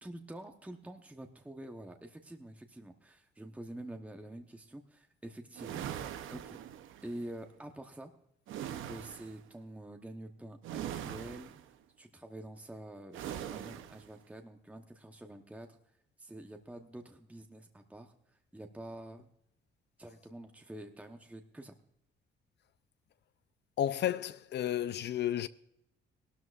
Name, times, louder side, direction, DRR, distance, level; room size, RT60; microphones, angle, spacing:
voice 1, 0.0-6.6 7.0-8.1 8.7-11.5 12.0-15.8 16.2-19.3 20.0-21.7, right 1 dB, 5° right, 0.9 m, -47 dB
sound 1, 5.5-7.2 8.5-9.4 10.6-11.7 13.1-14.1, right 10 dB, 85° right, 0.8 m, -41 dB
voice 2, 23.8-25.5, left 11 dB, 60° left, 0.5 m, -32 dB
17.0 x 12.5 x 2.4 m
cardioid pair, 90°, 20 cm